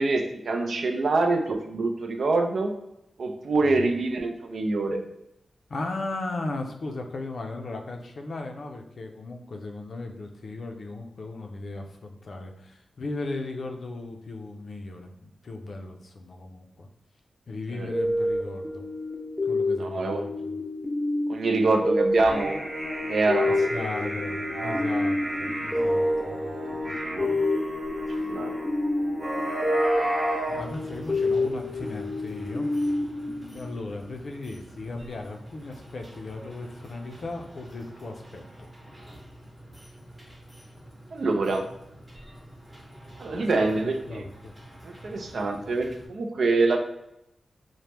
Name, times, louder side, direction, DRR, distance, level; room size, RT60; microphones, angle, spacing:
voice 1, 0.0-2.7 3.2-5.0 17.7-17.9 19.8-20.3 21.3-22.7 23.1-23.6 24.5-24.8 26.5-26.8 27.0-27.4 28.2-28.6 41.1-41.6 43.2-44.2 44.8-46.8, right 3 dB, 70° right, 4 dB, 0.4 m, -25 dB
voice 2, 5.7-16.9 17.5-18.8 19.4-20.3 23.5-27.4 28.2-28.3 30.0-30.3 30.5-32.7 33.5-38.7 43.3-44.5, left 2 dB, 65° left, 3 dB, 0.4 m, -37 dB
sound 1, 17.9-34.3, left 1 dB, 10° left, 0.5 m, -29 dB
sound 2, 22.2-30.6, right 1 dB, 45° right, 0.8 m, -32 dB
sound 3, 30.5-46.1, right 1 dB, 15° right, 0.8 m, -47 dB
2.9 x 2.0 x 3.2 m, 0.84 s
wide cardioid pair, 85°, 0 cm